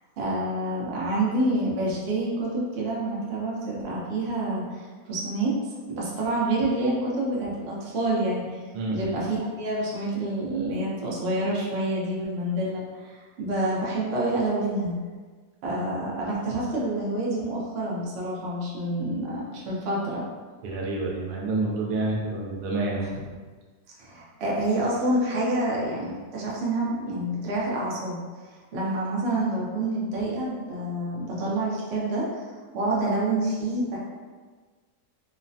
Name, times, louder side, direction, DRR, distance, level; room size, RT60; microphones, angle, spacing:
voice 1, 0.2-4.8 5.1-5.6 5.9-8.6 8.9-14.9 15.6-20.2 24.0-28.2 28.7-32.4 32.7-34.0, right 1 dB, 55° right, -5 dB, 0.7 m, -27 dB
voice 2, 8.7-9.1 20.6-23.1, right 2 dB, 90° right, -3 dB, 1.1 m, -28 dB
3.1 x 2.1 x 2.6 m, 1.5 s
omnidirectional pair, 1.6 m